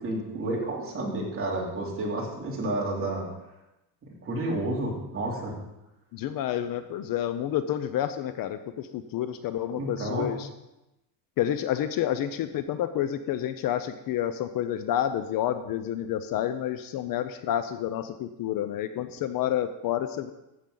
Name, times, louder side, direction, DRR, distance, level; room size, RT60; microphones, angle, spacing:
voice 1, 0.0-3.3 4.2-5.5 9.7-10.3, right 2 dB, 30° right, -3 dB, 2.9 m, -30 dB
voice 2, 6.1-8.6 8.9-10.5 11.4-20.3, left 11 dB, 55° left, 11 dB, 0.6 m, -29 dB
14.0 x 7.3 x 3.9 m, 0.94 s
cardioid pair, 145°, 42 cm